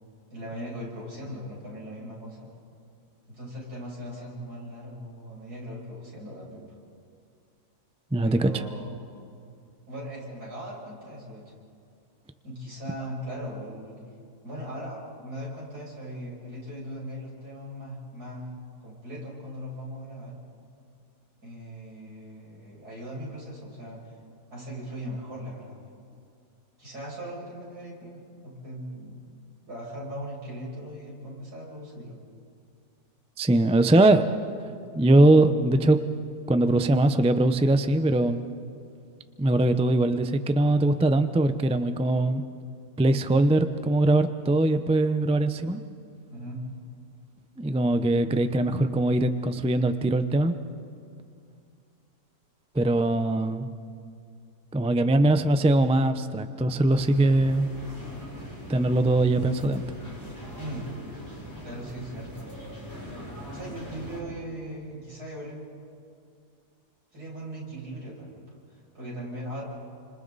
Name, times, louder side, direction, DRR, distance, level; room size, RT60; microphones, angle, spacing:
voice 1, 0.3-2.5 3.3-6.6 8.2-8.9 9.9-11.4 12.4-14.0 14.4-18.5 18.8-20.4 21.4-24.1 24.5-25.8 26.8-29.2 29.7-32.2 46.3-46.6 60.6-60.9 61.6-62.7 63.5-65.6 67.1-69.6, equal, 85° right, -5 dB, 7.5 m, -39 dB
voice 2, 8.1-8.5 33.4-34.3 34.9-36.0 36.5-38.4 39.4-42.4 43.0-45.8 47.6-50.5 52.7-53.7 54.7-57.7 58.7-59.8, right 2 dB, 10° right, 9 dB, 0.4 m, -21 dB
sound 1, 56.9-64.2, right 1 dB, 10° left, 7.2 m, -40 dB
29.5 x 26.5 x 4.1 m, 2.4 s
omnidirectional pair, 1.6 m